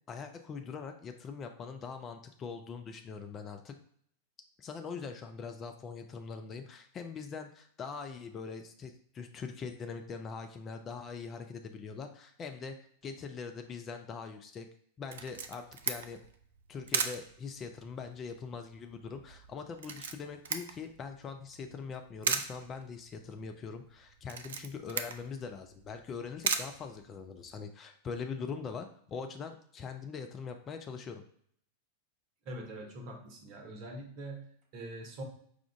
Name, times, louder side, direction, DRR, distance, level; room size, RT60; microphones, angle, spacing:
voice 1, 0.1-3.7 4.6-12.8 13.0-14.7 15.0-16.2 16.7-31.2, left 5 dB, 25° left, 5 dB, 0.4 m, -42 dB
Camera, 15.1-27.6, right 6 dB, 60° right, 0.3 m, -39 dB
voice 2, 32.4-35.2, right 1 dB, 45° right, 2 dB, 0.9 m, -44 dB
4.9 x 2.4 x 3.4 m, 0.64 s
figure-of-eight pair, 90°, 0 cm